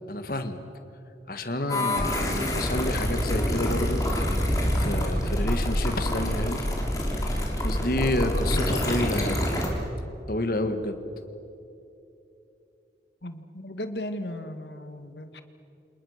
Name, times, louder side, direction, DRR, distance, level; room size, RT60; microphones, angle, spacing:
voice 1, 0.1-0.6 1.3-4.0 4.7-6.6 7.6-9.7 10.3-11.0, left 1 dB, 55° left, 8 dB, 1.9 m, -29 dB
sound 1, 1.7-9.7, left 1 dB, 20° left, 3.9 m, -26 dB
voice 2, 13.2-15.4, left 1 dB, 75° left, 9 dB, 1.8 m, -36 dB
29.0 x 27.5 x 6.7 m, 2.8 s
head